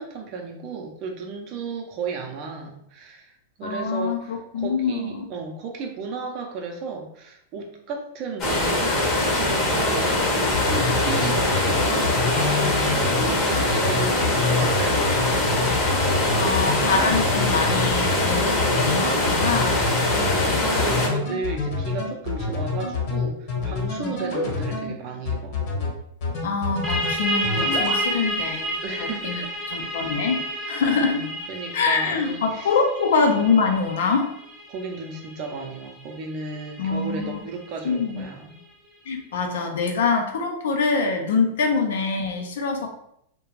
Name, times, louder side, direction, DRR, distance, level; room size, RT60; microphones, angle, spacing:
voice 1, 0.0-15.4 20.0-25.6 28.8-29.5 29.8-30.1 30.9-32.8 34.7-38.6 42.8-42.9, right 4 dB, 45° right, 2 dB, 0.5 m, -34 dB
voice 2, 3.6-5.3 16.3-19.9 26.4-29.4 29.7-31.2 31.7-34.3 36.8-37.4 37.8-38.2 39.1-42.9, left 4 dB, 80° left, 4 dB, 0.5 m, -24 dB
sound 1, 8.4-21.1, left 1 dB, 30° left, 0.7 m, -22 dB
sound 2, 10.5-24.9 25.2-25.9 26.2-27.1 27.4-28.0, left 4 dB, 55° left, 1.0 m, -27 dB
sound 3, 26.8-38.2, right 1 dB, 5° right, 0.6 m, -31 dB
2.3 x 2.2 x 3.1 m, 0.73 s
hypercardioid pair, 120°, 0 cm